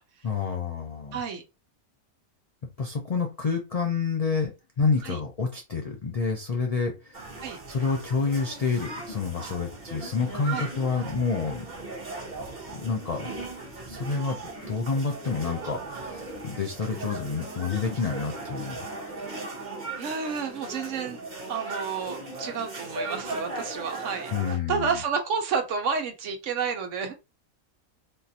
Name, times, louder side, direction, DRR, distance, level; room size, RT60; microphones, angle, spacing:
voice 1, 0.2-1.2 2.8-4.5 4.8-7.3 7.7-11.7 12.7-13.3 13.9-14.4 14.6-18.9 24.3-24.9, left 5 dB, 70° left, 0.3 m, -28 dB
voice 2, 1.1-1.4 5.0-5.2 7.4-7.6 10.5-10.7 20.0-21.2 21.5-27.1, right 5 dB, 65° right, 1.0 m, -30 dB
sound 1, 7.1-24.6, right 2 dB, 35° right, 1.1 m, -38 dB
3.7 x 2.5 x 2.7 m
omnidirectional pair, 1.5 m